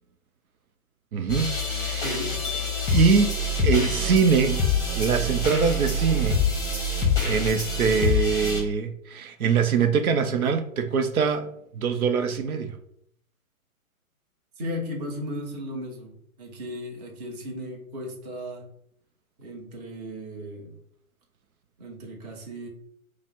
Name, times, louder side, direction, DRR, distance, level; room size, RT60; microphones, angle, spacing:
voice 1, 1.1-2.1 2.9-3.4 3.6-4.6 4.9-6.4 7.2-11.5 11.7-12.8, right 5 dB, 80° right, 7 dB, 0.7 m, -23 dB
sound 1, 1.3-8.6, left 3 dB, 10° left, 0.8 m, -26 dB
voice 2, 2.0-2.3 14.6-16.1 16.4-18.7 19.4-20.8 21.8-22.7, equal, 30° right, -1 dB, 1.0 m, -35 dB
5.0 x 2.1 x 3.5 m, 0.69 s
hypercardioid pair, 140°, 42 cm